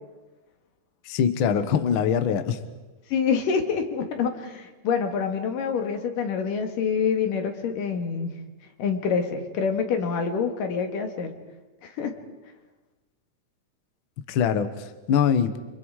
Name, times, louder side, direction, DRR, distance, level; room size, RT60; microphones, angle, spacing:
voice 1, 1.0-2.6 14.3-15.6, left 7 dB, 60° left, 10 dB, 1.4 m, -23 dB
voice 2, 3.1-8.3 8.8-11.3 11.8-12.1, left 6 dB, 85° left, 6 dB, 3.6 m, -26 dB
30.0 x 26.0 x 4.9 m, 1.2 s
omnidirectional pair, 3.8 m